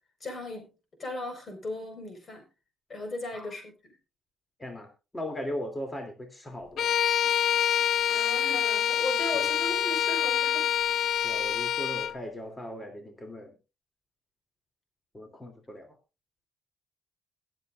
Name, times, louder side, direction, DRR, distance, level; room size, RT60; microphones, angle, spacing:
voice 1, 0.2-0.7 1.0-2.5 2.9-3.9 8.1-10.7, left 2 dB, 40° left, 5 dB, 4.6 m, -37 dB
voice 2, 4.6-6.9 9.3-9.5 11.2-13.5 15.1-16.0, equal, 15° left, 3 dB, 2.8 m, -38 dB
Bowed string instrument, 6.8-12.2, left 9 dB, 70° left, 0.5 m, -26 dB
21.5 x 7.7 x 2.5 m, 0.30 s
cardioid pair, 90°, 0 cm